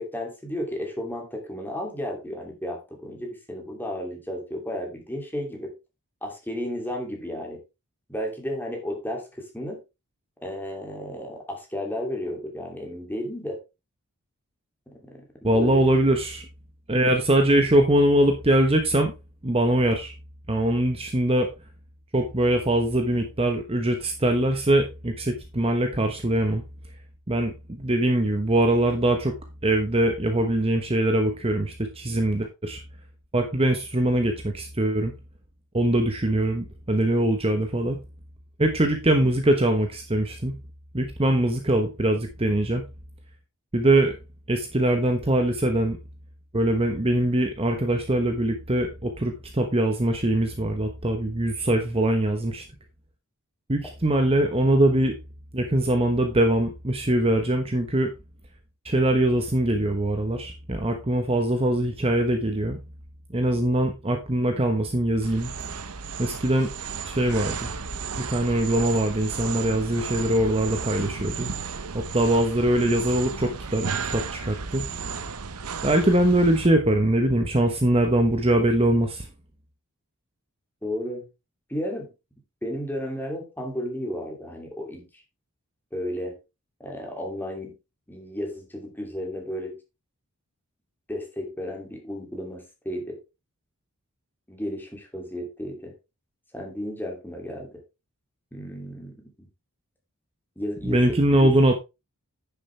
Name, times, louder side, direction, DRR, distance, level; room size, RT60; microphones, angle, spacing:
voice 1, 0.0-5.7 6.2-7.6 8.1-9.8 10.4-13.6 14.9-15.9 39.2-39.3 80.8-81.3 81.7-82.1 82.6-85.1 85.9-86.4 86.8-87.8 88.1-89.8 91.1-93.2 94.5-95.9 96.5-97.7 98.5-99.5 100.6-101.6, left 1 dB, 10° left, 1 dB, 2.6 m, -33 dB
voice 2, 15.4-16.4 16.9-19.1 19.4-20.1 20.5-21.5 22.1-26.6 27.3-29.3 29.6-32.8 33.3-35.1 35.7-38.0 38.6-40.5 40.9-42.8 43.7-44.2 44.5-46.0 46.5-52.6 53.7-55.2 55.5-58.1 58.8-62.8 63.3-65.5 66.2-66.7 67.0-67.7 68.1-71.5 71.9-74.8 75.8-79.3 100.8-101.7, right 1 dB, 25° right, 5 dB, 1.1 m, -22 dB
sound 1, 65.2-76.7, right 5 dB, 85° right, 0.9 m, -34 dB
10.0 x 7.1 x 3.3 m, 0.26 s
head